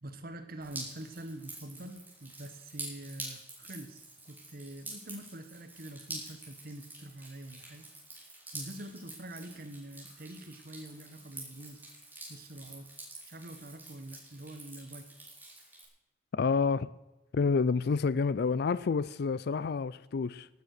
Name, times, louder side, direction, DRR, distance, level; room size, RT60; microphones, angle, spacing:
voice 1, 0.0-7.8 8.2-11.8 12.3-12.9 13.3-15.1, right 1 dB, 50° right, 1.2 m, -45 dB
Drip, 0.6-15.8, right 2 dB, 10° right, 5.7 m, -47 dB
voice 2, 16.3-16.9 17.3-20.5, left 5 dB, 60° left, 0.4 m, -28 dB
19.0 x 9.3 x 6.5 m
head